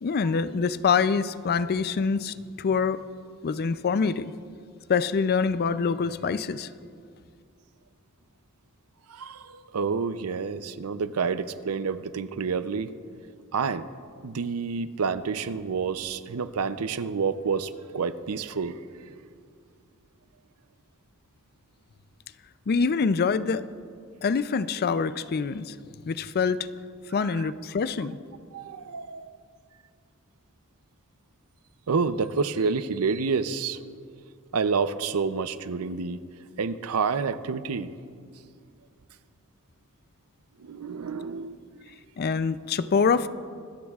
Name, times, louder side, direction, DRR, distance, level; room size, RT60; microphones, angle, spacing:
voice 1, 0.0-3.0 3.4-4.3 4.9-6.7 22.7-23.6 24.2-25.7 26.1-26.7 27.1-28.2 42.2-43.3, left 5 dB, 45° left, 14 dB, 0.4 m, -25 dB
voice 2, 9.1-12.9 13.5-13.9 14.2-18.8 27.4-27.5 28.5-29.3 31.9-33.8 34.5-36.2 36.6-37.9 40.6-41.6, right 5 dB, 75° right, 13 dB, 0.5 m, -28 dB
25.0 x 13.5 x 2.4 m, 2.2 s
head